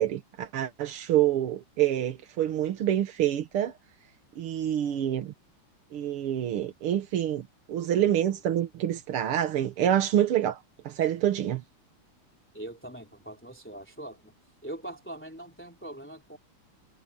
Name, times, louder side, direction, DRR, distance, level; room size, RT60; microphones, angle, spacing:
voice 1, 0.0-3.7 4.4-5.3 5.9-10.6 10.9-11.6, right 11 dB, 90° right, 2.1 m, -27 dB
voice 2, 12.5-14.3 14.6-16.4, right 1 dB, 5° left, 3.2 m, -42 dB
omnidirectional pair, 2.4 m